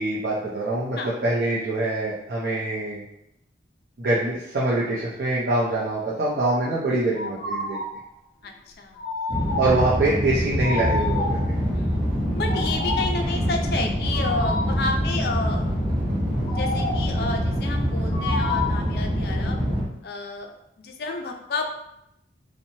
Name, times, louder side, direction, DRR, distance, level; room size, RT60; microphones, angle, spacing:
voice 1, 0.0-3.0 4.0-7.8 9.6-11.6, right 2 dB, 55° right, -7 dB, 0.5 m, -24 dB
sound 1, 7.1-8.0 8.9-9.9 10.6-11.5 12.4-13.2 14.1-14.8 16.4-17.2 18.1-18.9, left 3 dB, 20° left, 0.8 m, -30 dB
voice 2, 8.4-9.0 11.7-12.0 12.4-15.6 16.5-19.6 20.0-21.6, left 3 dB, 55° left, 3 dB, 0.3 m, -31 dB
sound 2, 9.3-19.8, equal, 25° right, 0.8 m, -25 dB
2.9 x 2.1 x 2.7 m, 0.81 s
head